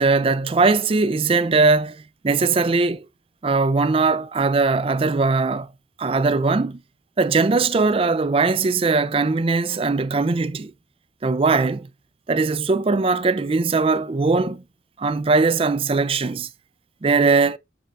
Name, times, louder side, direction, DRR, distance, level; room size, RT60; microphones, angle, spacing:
voice 1, 0.0-3.1 3.4-5.7 6.0-6.8 7.2-10.7 11.2-11.9 12.3-14.6 15.0-16.5 17.0-17.6, right 4 dB, 30° right, 0.4 m, -20 dB
12.0 x 4.1 x 2.4 m
head